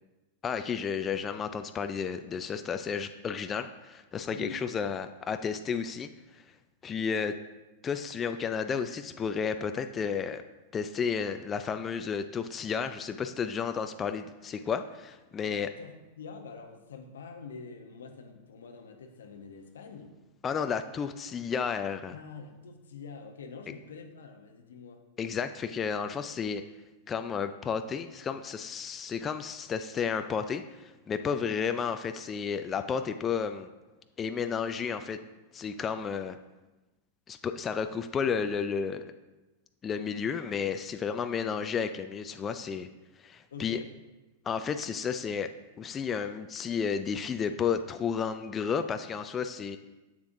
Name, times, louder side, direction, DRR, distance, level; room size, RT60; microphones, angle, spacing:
voice 1, 0.4-6.4 6.8-7.3 7.8-10.4 10.7-15.7 20.4-22.1 25.2-26.6 27.1-33.7 34.2-35.2 35.5-36.4 37.3-39.0 39.8-42.9 43.2-43.8 44.5-45.5 45.8-49.8, left 6 dB, 25° left, 9 dB, 0.3 m, -32 dB
voice 2, 4.3-4.6 7.0-7.3 15.5-20.1 22.1-25.0 31.3-31.6 43.5-43.9, left 5 dB, 80° left, 3 dB, 0.8 m, -46 dB
7.3 x 7.0 x 2.6 m, 1.1 s
hypercardioid pair, 105°, 0 cm